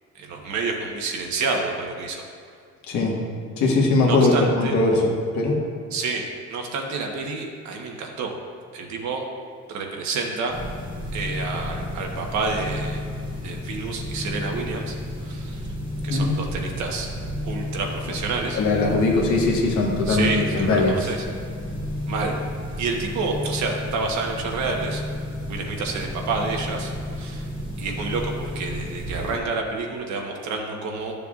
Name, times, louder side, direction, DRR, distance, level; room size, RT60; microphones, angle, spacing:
voice 1, 0.1-2.2 4.0-4.8 5.9-8.3 8.7-9.2 9.7-10.6 11.1-13.0 13.4-15.7 16.0-17.1 17.4-18.6 20.1-21.2 22.1-22.3 22.8-25.0 25.5-27.5 27.8-31.1, right 4 dB, 65° right, 1 dB, 1.2 m, -29 dB
voice 2, 2.9-3.2 3.6-5.6 16.1-16.4 18.5-20.9, left 2 dB, 70° left, -2 dB, 1.6 m, -20 dB
sound 1, 10.5-29.4, left 1 dB, 15° right, 1.6 m, -32 dB
12.0 x 6.8 x 2.5 m, 2.3 s
cardioid pair, 170°, 30 cm